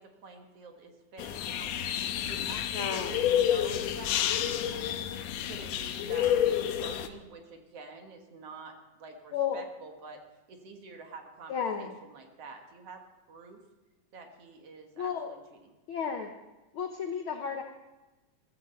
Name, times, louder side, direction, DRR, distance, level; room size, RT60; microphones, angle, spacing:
voice 1, 0.0-1.7 2.1-5.2 5.4-10.2 10.5-13.6 14.1-15.7, right 4 dB, 55° right, 4 dB, 2.2 m, -48 dB
sound 1, 1.2-7.1, left 10 dB, 70° left, 1.8 m, -29 dB
voice 2, 2.7-3.1 9.3-9.6 11.5-12.0 15.0-15.3 15.9-16.3 16.7-17.6, left 7 dB, 90° left, 5 dB, 1.1 m, -33 dB
14.5 x 14.5 x 4.3 m, 1.1 s
omnidirectional pair, 3.5 m